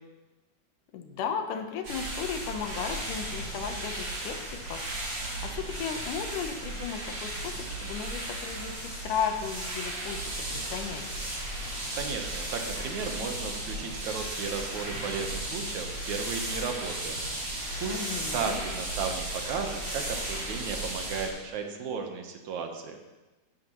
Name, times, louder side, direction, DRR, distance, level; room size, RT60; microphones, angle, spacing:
voice 1, 0.9-4.8 5.4-11.0 17.8-18.6, left 7 dB, 80° left, 6 dB, 2.5 m, -35 dB
sound 1, 1.8-21.3, right 1 dB, 35° right, 4.2 m, -35 dB
voice 2, 11.9-17.5 17.8-18.0 18.3-23.0, right 5 dB, 70° right, 4 dB, 2.3 m, -35 dB
16.0 x 13.0 x 3.1 m, 1.1 s
omnidirectional pair, 3.7 m